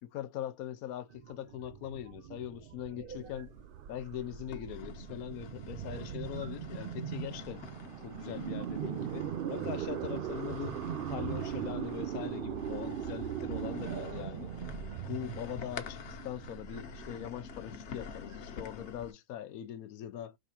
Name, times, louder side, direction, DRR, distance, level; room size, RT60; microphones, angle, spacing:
voice 1, 0.0-3.5 3.9-7.6 8.0-14.5 15.1-20.4, left 11 dB, 85° left, 1.1 m, -41 dB
sound 1, 1.1-18.9, right 10 dB, 75° right, 0.5 m, -40 dB
sound 2, 3.3-4.0 4.5-19.1, left 7 dB, 55° left, 1.1 m, -48 dB
4.8 x 3.4 x 2.9 m
omnidirectional pair, 1.5 m